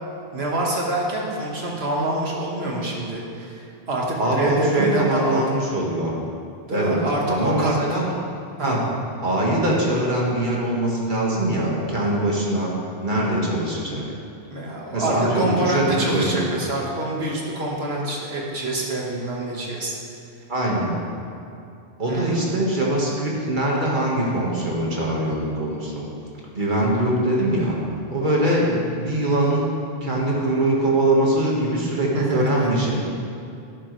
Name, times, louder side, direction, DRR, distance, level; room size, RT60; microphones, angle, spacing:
voice 1, 0.3-5.6 6.7-7.7 8.6-8.7 14.5-19.9 22.1-22.5 32.1-32.7, right 1 dB, 75° right, -2 dB, 1.8 m, -26 dB
voice 2, 4.2-6.1 6.7-7.0 7.3-8.1 8.6-8.8 9.2-12.7 13.0-14.0 14.9-16.4 20.5-20.9 22.0-26.1 26.5-27.7 28.1-29.6 30.0-33.0, right 1 dB, 50° right, -4 dB, 1.7 m, -22 dB
11.0 x 10.0 x 3.2 m, 2.5 s
omnidirectional pair, 1.1 m